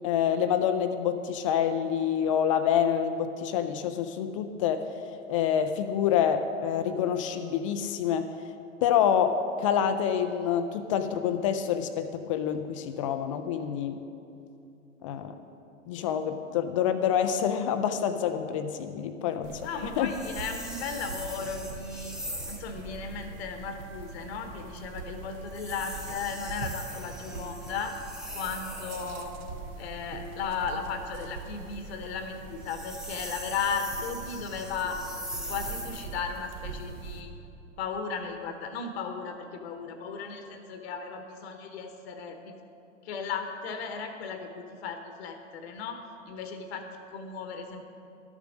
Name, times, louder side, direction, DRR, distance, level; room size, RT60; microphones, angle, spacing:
voice 1, 0.0-4.8 5.3-8.3 8.8-14.0 15.0-15.4 15.9-20.1, left 8 dB, 25° left, 9 dB, 0.4 m, -27 dB
sound 1, 19.4-37.2, right 3 dB, 45° right, 1.2 m, -43 dB
voice 2, 19.6-22.2 22.5-28.0 28.3-29.3 29.8-35.0 35.5-37.3 37.8-42.5 43.0-47.8, left 5 dB, 50° left, 7 dB, 1.0 m, -36 dB
sound 2, 20.1-22.7 25.5-29.3 32.5-36.2, equal, ahead, 0.9 m, -41 dB
12.5 x 7.2 x 6.1 m, 2.8 s
figure-of-eight pair, 100°, 39 cm